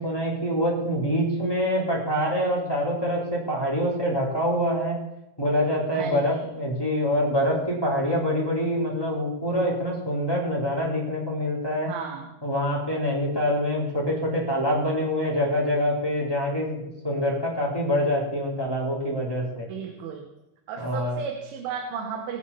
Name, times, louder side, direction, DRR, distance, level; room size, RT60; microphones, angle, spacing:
voice 1, 0.0-5.0 5.4-11.9 12.4-19.7 20.8-21.2, equal, 5° left, -4 dB, 3.1 m, -25 dB
voice 2, 5.9-6.5 11.9-12.3 19.7-20.2 20.7-22.4, right 6 dB, 90° right, 1 dB, 4.1 m, -34 dB
22.0 x 9.5 x 4.3 m, 0.93 s
omnidirectional pair, 5.4 m